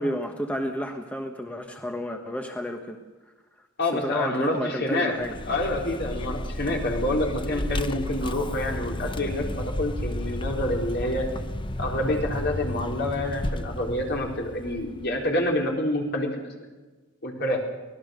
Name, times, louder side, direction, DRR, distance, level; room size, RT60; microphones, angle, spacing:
voice 1, 0.0-3.0 3.9-5.4, equal, 5° left, 4 dB, 1.3 m, -31 dB
voice 2, 3.8-5.2 5.5-11.3 11.8-16.5 17.2-17.6, left 1 dB, 55° left, 0 dB, 4.3 m, -27 dB
Vehicle, 5.2-15.5, left 1 dB, 25° left, 0.8 m, -32 dB
24.5 x 18.5 x 6.6 m, 1.2 s
head